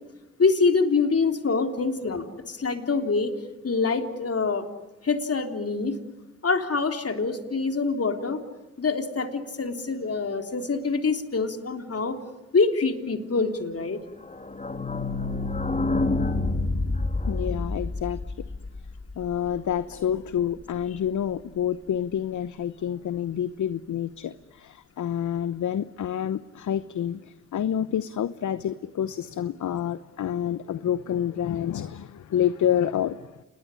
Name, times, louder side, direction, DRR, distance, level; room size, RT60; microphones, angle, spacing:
voice 1, 0.4-3.3 3.6-4.7 5.0-6.0 6.4-8.4 8.8-12.2 12.5-14.0, left 4 dB, 45° left, 6 dB, 3.5 m, -25 dB
sound 1, 14.2-19.8 20.1-20.2 20.4-20.5 20.8-20.9, left 2 dB, 20° left, 2.1 m, -28 dB
voice 2, 17.3-18.2 19.2-33.3, left 9 dB, 60° left, 15 dB, 0.9 m, -28 dB
28.0 x 21.0 x 10.0 m, 1.0 s
hypercardioid pair, 45°, 34 cm